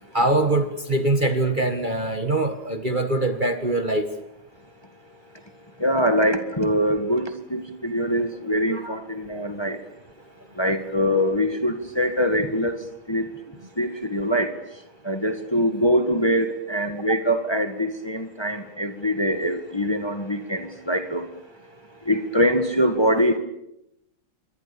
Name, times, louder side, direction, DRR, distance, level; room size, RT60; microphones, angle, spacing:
voice 1, 0.1-4.1 8.7-9.0, right 2 dB, 30° right, 7 dB, 1.7 m, -23 dB
voice 2, 5.8-9.8 10.6-12.8 13.1-13.2 13.8-14.5 15.1-21.2 22.1-23.4, equal, 15° left, 7 dB, 1.9 m, -23 dB
28.0 x 24.0 x 7.1 m, 0.81 s
omnidirectional pair, 1.9 m